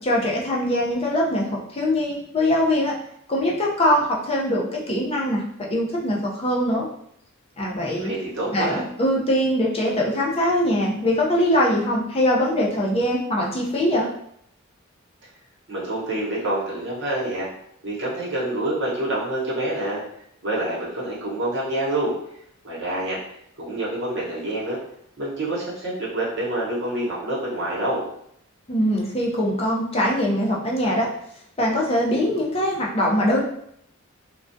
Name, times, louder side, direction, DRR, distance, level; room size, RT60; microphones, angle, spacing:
voice 1, 0.0-2.9 3.3-5.4 5.7-6.9 7.6-8.1 8.5-14.1 28.7-31.1 31.6-33.4, left 1 dB, 30° left, -3 dB, 0.5 m, -22 dB
voice 2, 8.0-8.8 15.7-17.5 17.8-20.0 20.4-22.2 22.6-23.2 23.6-24.8 25.2-28.0, right 1 dB, 55° right, -5 dB, 0.9 m, -27 dB
2.2 x 2.2 x 2.5 m, 0.70 s
head